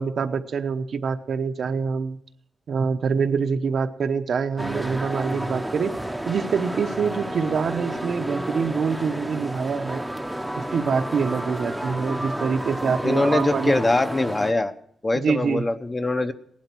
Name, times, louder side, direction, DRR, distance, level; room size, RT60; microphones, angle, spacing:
voice 1, 0.0-2.2 2.7-5.9 6.3-10.0 10.6-13.8 15.1-15.6, right 5 dB, 70° right, 7 dB, 0.9 m, -25 dB
sound 1, 4.6-14.5, right 1 dB, 5° right, 0.8 m, -31 dB
voice 2, 13.0-14.7 15.0-16.3, left 2 dB, 25° left, 9 dB, 0.8 m, -23 dB
17.0 x 11.5 x 4.5 m, 0.70 s
wide cardioid pair, 115°, 0 cm